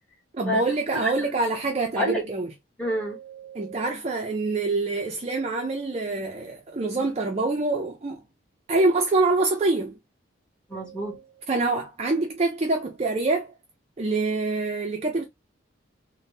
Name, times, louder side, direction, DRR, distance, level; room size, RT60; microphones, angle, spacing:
voice 1, 0.3-2.5 3.5-8.2 8.7-10.0 11.5-13.5 14.0-15.2, right 3 dB, 35° right, 0.5 m, -25 dB
voice 2, 2.8-3.9 10.7-11.2, equal, 5° left, 1.2 m, -29 dB
3.4 x 2.1 x 2.7 m
head